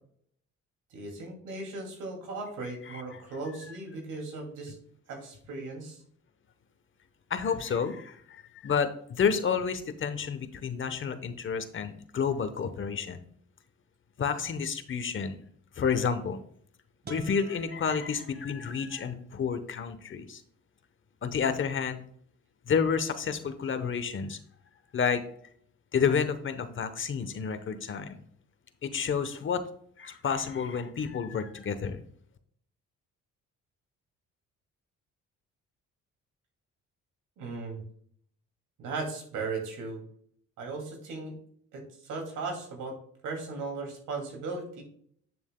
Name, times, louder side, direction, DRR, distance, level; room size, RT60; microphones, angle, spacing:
voice 1, 0.9-4.8 5.1-6.0 37.4-37.8 38.8-40.0 40.6-41.3 41.7-43.0 43.2-44.8, right 3 dB, 85° right, 1 dB, 2.4 m, -37 dB
voice 2, 2.9-3.2 7.3-13.2 14.2-15.4 15.8-16.4 17.1-20.4 21.2-22.0 22.7-24.4 24.9-25.2 25.9-28.2 28.8-29.6 30.0-32.0, left 6 dB, 40° left, 10 dB, 0.9 m, -30 dB
sound 1, 17.0-19.0, right 5 dB, 35° right, 1.3 m, -48 dB
8.8 x 6.9 x 2.2 m, 0.62 s
cardioid pair, 90°, 30 cm